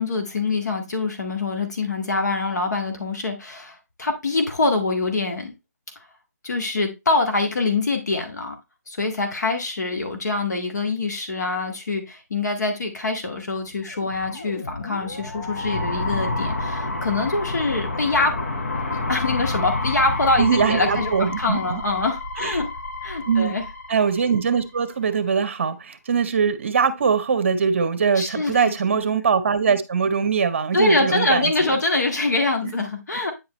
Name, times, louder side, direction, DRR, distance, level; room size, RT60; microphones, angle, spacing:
voice 1, 0.0-5.6 6.4-8.6 8.9-18.3 18.9-22.7 23.0-23.6 28.2-28.7 30.7-33.3, left 3 dB, 80° left, 4 dB, 1.9 m, -24 dB
sound 1, 13.9-24.8, left 2 dB, 55° left, 1.5 m, -29 dB
voice 2, 20.4-21.8 22.4-22.6 23.3-23.5 23.9-31.8 32.6-32.7, right 6 dB, 45° right, 11 dB, 0.9 m, -22 dB
9.1 x 4.7 x 3.2 m, 0.23 s
hypercardioid pair, 170°, 9 cm